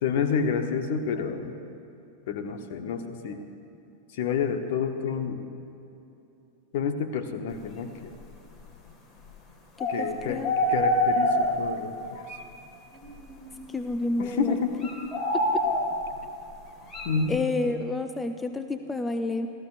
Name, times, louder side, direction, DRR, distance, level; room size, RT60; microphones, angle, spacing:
voice 1, 0.0-1.5 2.3-3.4 4.1-5.4 6.7-8.1 9.9-12.2 14.2-15.1 17.0-17.4, left 6 dB, 50° left, 8 dB, 0.9 m, -29 dB
sound 1, 9.8-10.0 10.4-11.7 12.3-12.4 13.0-13.6 14.8-16.2 16.9-17.1, left 1 dB, 35° left, 1.8 m, -25 dB
voice 2, 9.8-10.5 13.7-14.6 17.3-19.5, left 2 dB, 10° left, 8 dB, 0.6 m, -29 dB
27.0 x 14.5 x 2.5 m, 2.9 s
figure-of-eight pair, 90°, 0 cm